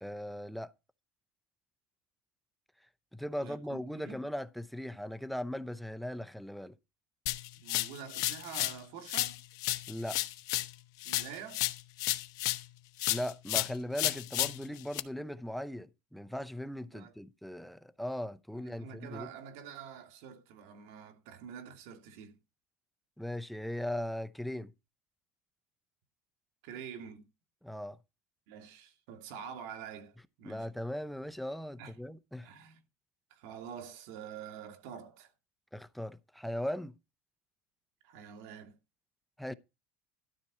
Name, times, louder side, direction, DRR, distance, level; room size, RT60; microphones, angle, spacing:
voice 1, 0.0-0.7 3.1-6.7 9.9-10.2 13.1-19.3 23.2-24.7 27.6-28.0 30.4-32.5 35.7-36.9 39.4-39.5, left 1 dB, ahead, 0.6 m, -38 dB
voice 2, 3.4-4.2 7.5-9.4 11.0-11.7 16.9-17.1 18.7-22.4 26.6-27.3 28.5-30.1 30.4-30.7 31.8-32.0 32.4-32.8 33.3-35.3 38.0-38.8, right 7 dB, 75° right, 2.4 m, -47 dB
sound 1, 7.3-8.8 9.1-12.7 13.0-15.0, left 17 dB, 65° left, 0.9 m, -33 dB
13.0 x 4.4 x 6.7 m
supercardioid pair, 120°, 7 cm